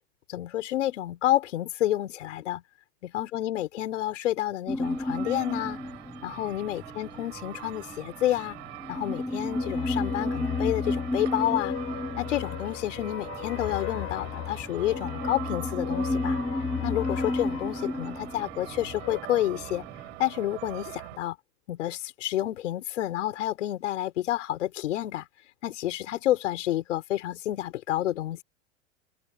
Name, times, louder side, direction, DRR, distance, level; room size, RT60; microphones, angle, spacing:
voice 1, 0.3-2.6 3.0-5.8 6.2-8.6 8.9-11.7 12.2-16.4 16.8-19.8 20.2-21.4 21.7-25.2 25.6-28.4, left 13 dB, 80° left, 5.8 m, -29 dB
sound 1, 4.7-20.1, left 1 dB, 5° left, 7.2 m, -33 dB
sound 2, 4.8-21.2, right 23 dB, 65° right, 5.2 m, -43 dB
sound 3, 9.5-19.2, left 13 dB, 35° left, 1.6 m, -37 dB
hypercardioid pair, 115°, 36 cm